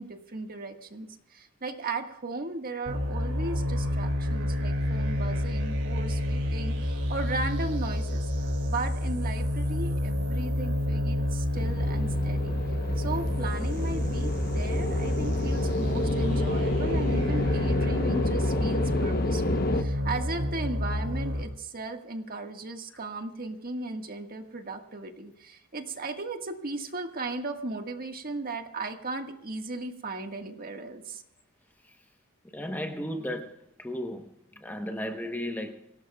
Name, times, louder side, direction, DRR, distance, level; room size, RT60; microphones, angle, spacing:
voice 1, 0.0-8.3 8.7-12.6 13.0-31.2, right 3 dB, 40° right, 1.6 m, -36 dB
sound 1, 2.9-21.4, left 1 dB, 70° right, 4.7 m, -29 dB
sound 2, 11.5-19.8, left 2 dB, 45° left, 0.9 m, -31 dB
voice 2, 32.4-35.9, equal, 10° left, 1.0 m, -35 dB
26.0 x 17.5 x 2.3 m
head